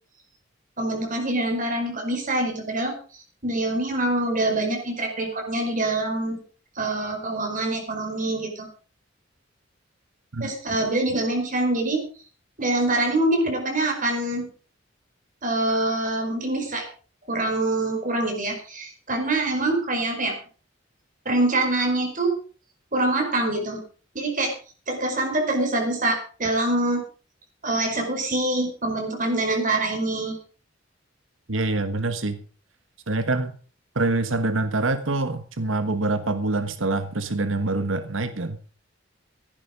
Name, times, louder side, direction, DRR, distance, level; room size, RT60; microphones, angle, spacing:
voice 1, 0.8-2.9 3.4-6.4 6.8-8.7 10.4-12.0 12.6-14.5 15.4-16.8 17.3-20.4 21.2-22.3 22.9-23.8 24.1-24.5 24.9-27.0 27.6-30.4, right 2 dB, 45° right, 3 dB, 4.8 m, -25 dB
voice 2, 31.5-32.4 33.1-33.5 33.9-38.6, right 2 dB, 90° right, 10 dB, 1.4 m, -25 dB
15.0 x 11.0 x 5.1 m, 0.39 s
head